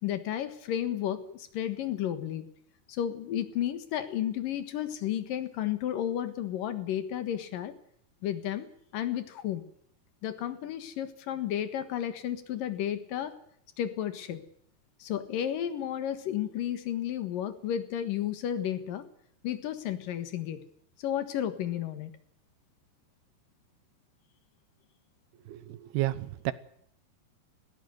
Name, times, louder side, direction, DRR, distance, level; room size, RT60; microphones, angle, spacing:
voice 1, 0.0-2.5 2.9-7.7 8.2-8.7 8.9-9.7 10.2-13.3 13.8-14.4 15.0-19.0 19.4-20.6 21.0-22.1, left 10 dB, 65° left, 11 dB, 2.9 m, -32 dB
voice 2, 25.5-26.5, right 16 dB, 75° right, 16 dB, 2.8 m, -31 dB
20.0 x 16.5 x 8.0 m, 0.69 s
omnidirectional pair, 4.7 m